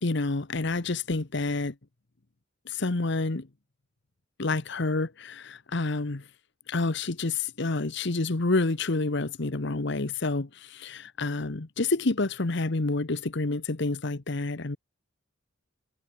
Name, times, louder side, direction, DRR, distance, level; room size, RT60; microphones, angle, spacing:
voice 1, 0.0-1.7 2.7-3.5 4.4-6.2 6.7-14.8, left 3 dB, 60° left, 1.1 m, -28 dB
head